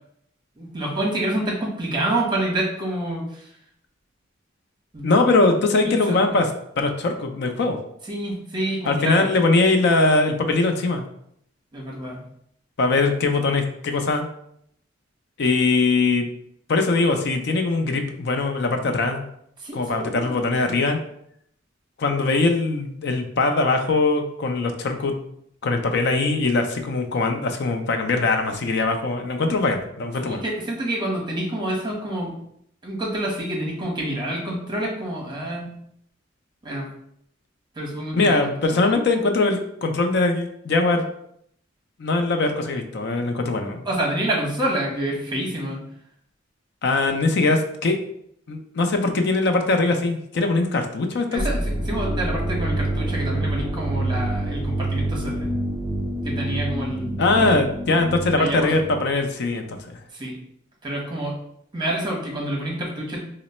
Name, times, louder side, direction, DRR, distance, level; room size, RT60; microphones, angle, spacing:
voice 1, 0.6-3.5 4.9-5.2 6.1-6.4 8.1-9.3 11.7-12.2 19.6-20.4 30.2-32.4 32.8-35.8 36.6-36.9 37.8-38.4 38.7-38.8 43.9-45.8 51.3-55.6 56.2-57.6 58.4-58.8 60.1-60.3 60.8-61.3 61.7-63.2, right 1 dB, 25° right, -2 dB, 1.0 m, -28 dB
voice 2, 5.0-6.5 6.8-7.8 8.9-11.0 12.8-14.3 15.4-16.3 16.7-19.2 19.7-21.0 22.0-25.2 25.6-30.4 38.1-41.1 42.0-43.8 46.8-48.0 48.5-51.4 57.2-60.0, left 3 dB, 60° left, 5 dB, 0.5 m, -21 dB
sound 1, 51.4-59.1, right 1 dB, 5° left, 0.5 m, -27 dB
3.0 x 2.0 x 4.1 m, 0.71 s
head